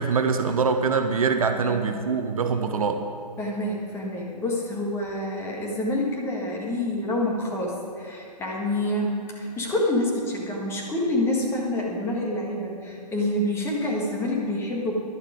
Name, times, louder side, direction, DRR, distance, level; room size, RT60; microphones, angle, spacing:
voice 1, 0.0-3.0, right 5 dB, 55° right, 6 dB, 0.9 m, -24 dB
voice 2, 1.5-1.9 3.4-14.9, left 1 dB, 10° left, -2 dB, 1.7 m, -27 dB
11.5 x 11.5 x 5.0 m, 2.3 s
figure-of-eight pair, 125°, 21 cm